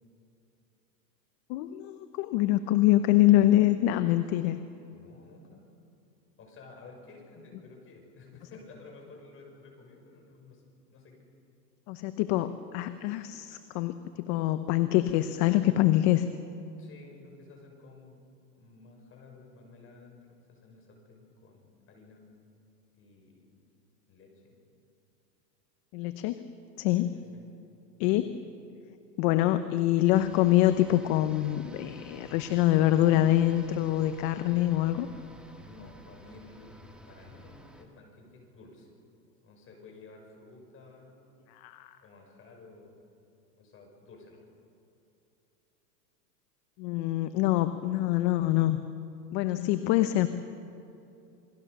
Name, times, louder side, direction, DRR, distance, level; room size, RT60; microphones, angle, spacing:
voice 1, 1.5-4.6 11.9-16.3 25.9-26.4 26.8-27.1 28.0-28.3 29.2-35.1 41.5-41.9 46.8-48.8 49.3-50.3, left 14 dB, 40° left, 11 dB, 1.0 m, -25 dB
voice 2, 4.9-5.7 6.4-11.3 16.8-18.2 18.5-22.3 22.9-23.6 24.1-24.5 26.8-27.1 27.3-27.5 28.1-28.5 29.4-29.5 35.6-38.9 39.4-41.2 42.0-43.0 43.6-44.5, left 3 dB, 25° left, 1 dB, 6.2 m, -53 dB
sound 1, 30.1-37.8, right 1 dB, ahead, 2.0 m, -51 dB
28.0 x 21.5 x 6.8 m, 2.8 s
supercardioid pair, 140°, 50 cm